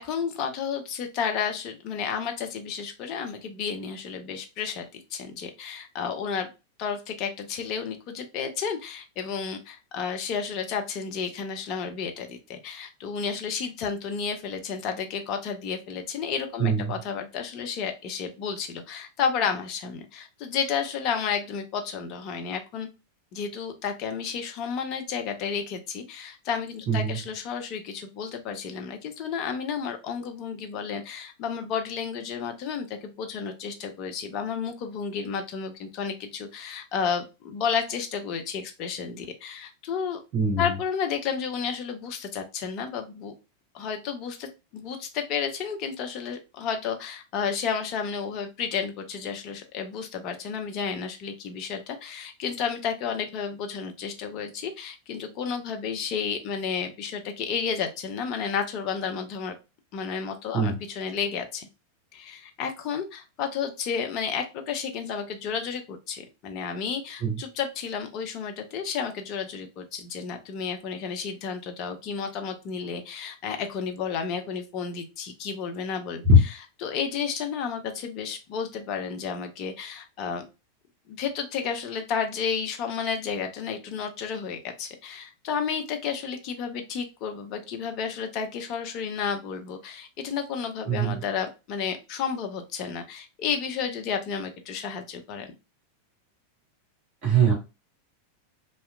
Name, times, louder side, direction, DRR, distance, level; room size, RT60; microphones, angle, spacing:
voice 1, 0.0-6.5 6.8-22.9 23.3-40.2 40.6-43.3 43.7-59.5 59.9-61.7 62.1-76.2 76.8-80.4 81.1-95.5, left 6 dB, 40° left, 6 dB, 0.5 m, -32 dB
voice 2, 16.6-16.9 26.9-27.2 40.3-40.7 60.5-60.8 67.2-67.3 76.2-76.4 90.9-91.2 97.2-97.5, right 1 dB, 40° right, -3 dB, 0.9 m, -21 dB
2.7 x 2.1 x 2.2 m, 0.28 s
figure-of-eight pair, 90°, 0 cm